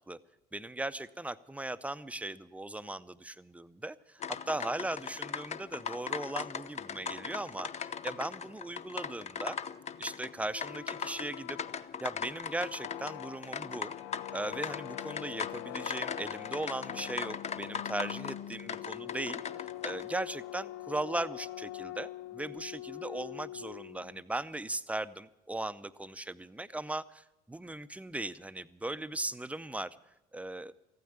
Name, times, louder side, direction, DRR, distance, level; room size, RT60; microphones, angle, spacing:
voice 1, 0.5-4.2 4.5-9.6 10.0-13.9 14.3-30.0 30.3-30.7, right 2 dB, 5° right, 14 dB, 0.6 m, -38 dB
sound 1, 4.2-20.1, left 6 dB, 35° left, 0.6 m, -39 dB
sound 2, 10.5-24.2, left 14 dB, 75° left, 0.5 m, -44 dB
14.5 x 9.4 x 9.4 m, 0.97 s
hypercardioid pair, 65°, 19 cm